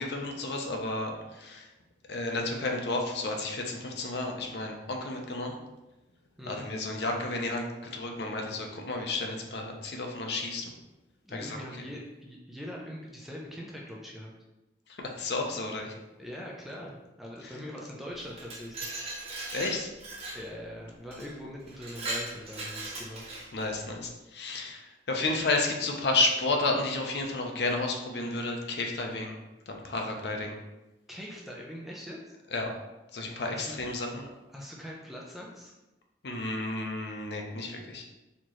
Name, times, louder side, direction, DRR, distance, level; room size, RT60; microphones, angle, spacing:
voice 1, 0.0-1.7 2.1-5.6 6.5-7.7 7.9-10.7 11.3-11.6 15.0-15.9 17.4-17.5 19.5-19.9 23.5-29.4 29.7-30.6 32.5-32.7 33.1-34.3 36.2-38.0, left 2 dB, 70° left, 2 dB, 0.6 m, -32 dB
voice 2, 11.2-14.3 16.2-19.4 20.3-23.3 31.1-32.2 33.5-33.8 34.5-35.7, equal, ahead, -3 dB, 0.4 m, -42 dB
Glass, 18.2-20.5 21.1-21.3 21.7-23.7, right 2 dB, 35° right, 0.7 m, -38 dB
4.3 x 2.9 x 3.0 m, 1.0 s
head